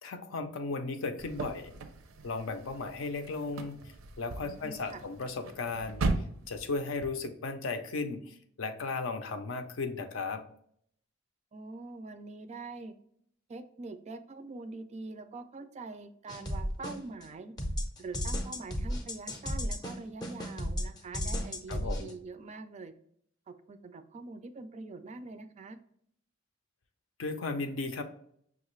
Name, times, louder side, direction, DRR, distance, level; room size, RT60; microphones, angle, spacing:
voice 1, 0.0-1.7 2.2-3.8 4.2-6.0 6.5-10.4 21.7-22.1 27.2-28.0, left 3 dB, 70° left, 7 dB, 0.5 m, -35 dB
sound 1, 1.2-7.1, right 3 dB, 90° right, 0.5 m, -38 dB
voice 2, 4.4-5.0 11.5-12.9 13.5-17.5 18.0-22.9 23.5-25.8, right 3 dB, 35° right, 10 dB, 0.3 m, -44 dB
sound 2, 16.3-17.3 17.6-22.1, equal, 20° left, 0.6 m, -34 dB
5.8 x 2.4 x 3.0 m, 0.67 s
head